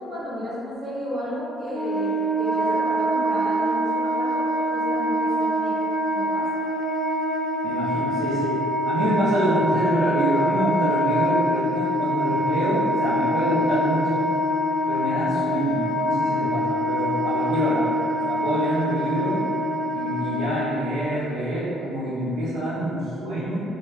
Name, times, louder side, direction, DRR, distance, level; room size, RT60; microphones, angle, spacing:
voice 1, 0.0-5.8 6.1-6.5, equal, 55° right, -12 dB, 1.3 m, -33 dB
Wind instrument woodwind instrument, 1.7-21.2, equal, 25° right, 0.4 m, -24 dB
voice 2, 7.6-8.6 8.9-14.2 14.9-17.9 18.2-19.4 19.9-23.6, right 1 dB, 70° right, -11 dB, 0.6 m, -26 dB
2.9 x 2.4 x 2.2 m, 2.7 s
supercardioid pair, 70°, 0 cm